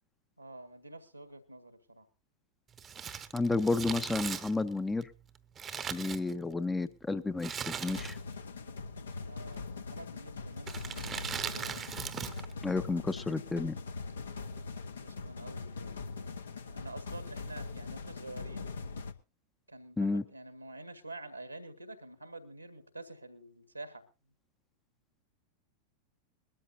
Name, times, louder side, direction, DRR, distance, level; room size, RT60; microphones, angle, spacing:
voice 1, 0.4-2.1 9.2-11.8 14.0-18.8 19.7-24.0, right 2 dB, 85° right, 10 dB, 1.8 m, -48 dB
Crumpling crinkling, 2.7-6.7 7.4-8.4 8.7-8.8 9.6-9.9 10.6-12.5 12.8-12.9, right 7 dB, 25° right, 0.9 m, -39 dB
voice 2, 3.3-5.1 5.9-8.2 12.6-13.8 20.0-20.2, left 3 dB, 10° left, 11 dB, 0.7 m, -31 dB
sound 1, 7.9-19.1, left 4 dB, 70° left, 1.0 m, -42 dB
21.5 x 13.5 x 2.7 m, 0.28 s
figure-of-eight pair, 90°, 0 cm